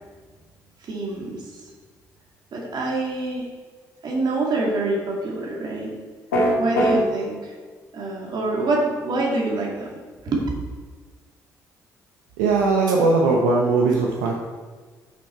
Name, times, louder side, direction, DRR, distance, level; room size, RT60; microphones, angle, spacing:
voice 1, 0.8-1.5 2.5-3.5 4.0-5.9 6.6-7.5 7.9-10.0 10.2-10.4, right 2 dB, 55° right, -2 dB, 2.5 m, -26 dB
sound 1, 6.3-7.0, equal, 85° left, 1.7 m, -19 dB
voice 2, 12.4-14.3, right 3 dB, 80° right, -1 dB, 0.8 m, -19 dB
8.4 x 5.9 x 4.5 m, 1.4 s
hypercardioid pair, 45°, 9 cm